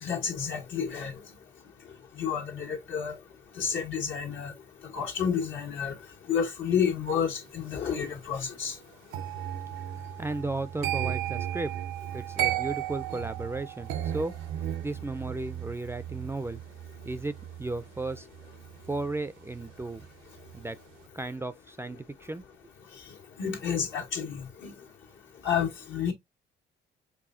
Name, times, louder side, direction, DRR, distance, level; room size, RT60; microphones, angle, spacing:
voice 1, 0.0-1.1 2.2-3.2 3.6-4.5 4.9-5.9 6.3-8.8 23.4-24.7 25.4-26.1, left 7 dB, 75° left, 1.7 m, -30 dB
sound 1, 9.1-20.1 20.4-20.8, right 12 dB, 85° right, 0.6 m, -35 dB
voice 2, 10.2-11.7 12.1-14.3 14.8-16.6 17.0-17.3 17.6-18.3 18.9-20.1 20.5-20.8 21.1-22.4, right 2 dB, 10° right, 0.4 m, -34 dB
4.8 x 3.5 x 2.5 m
cardioid pair, 90°, 20 cm